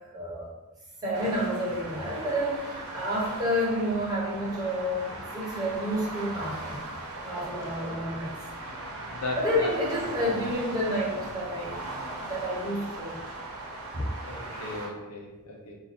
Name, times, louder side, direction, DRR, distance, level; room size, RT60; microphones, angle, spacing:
voice 1, 0.1-0.5 1.0-6.9 7.2-8.3 9.3-11.8 12.3-13.2 13.9-14.0, equal, 15° right, -7 dB, 1.1 m, -29 dB
sound 1, 1.1-14.9, right 2 dB, 75° right, 0.8 m, -39 dB
voice 2, 9.1-9.7 10.2-10.3 14.2-15.7, left 2 dB, 85° left, 0 dB, 0.8 m, -37 dB
2.7 x 2.6 x 4.2 m, 1.1 s
head